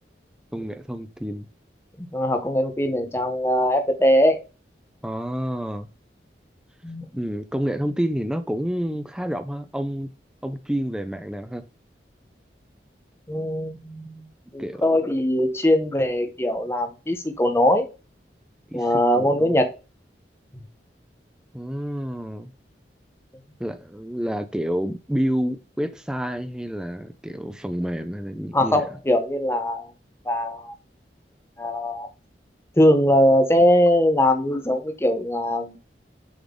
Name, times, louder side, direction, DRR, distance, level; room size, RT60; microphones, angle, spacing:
voice 1, 0.5-1.5 5.0-5.9 7.2-10.1 10.4-11.6 14.6-14.9 18.7-19.6 21.5-22.5 23.6-28.9, equal, 5° right, 0.4 m, -29 dB
voice 2, 2.0-4.4 6.8-7.1 13.3-14.3 14.5-17.9 18.7-19.7 28.5-29.9 30.3-30.7 31.6-32.1 32.8-35.8, left 1 dB, 15° left, 0.8 m, -21 dB
7.0 x 3.8 x 3.7 m
head